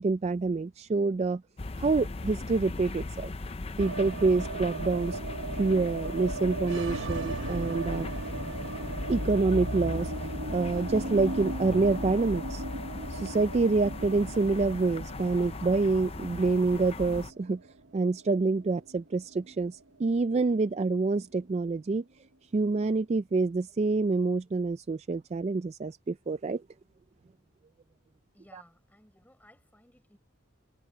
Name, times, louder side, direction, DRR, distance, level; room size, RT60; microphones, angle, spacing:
voice 1, 0.0-1.4 1.8-3.3 3.8-5.2 5.5-8.1 9.1-12.6 13.1-17.6 17.9-22.0 22.5-26.6 28.5-28.6, right 3 dB, 30° right, 0.3 m, -27 dB
sound 1, 1.6-17.3, left 2 dB, 30° left, 0.5 m, -37 dB
sound 2, 3.8-19.9 20.1-20.2 20.5-21.2, right 2 dB, 65° right, 1.2 m, -38 dB
voice 2, 28.3-30.2, left 1 dB, 10° left, 5.6 m, -59 dB
head